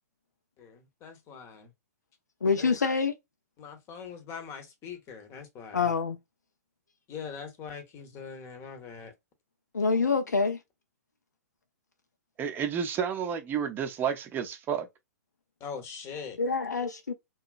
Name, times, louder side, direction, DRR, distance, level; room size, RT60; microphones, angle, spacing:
voice 1, 0.6-1.7 2.6-2.8 3.6-5.9 7.1-9.1 15.6-16.4, left 6 dB, 30° left, 0.8 m, -42 dB
voice 2, 2.4-3.1 5.7-6.2 9.7-10.6 16.4-17.1, left 4 dB, 85° left, 0.5 m, -26 dB
voice 3, 12.4-14.9, right 8 dB, 20° right, 0.6 m, -30 dB
2.8 x 2.3 x 2.4 m
hypercardioid pair, 115°, 9 cm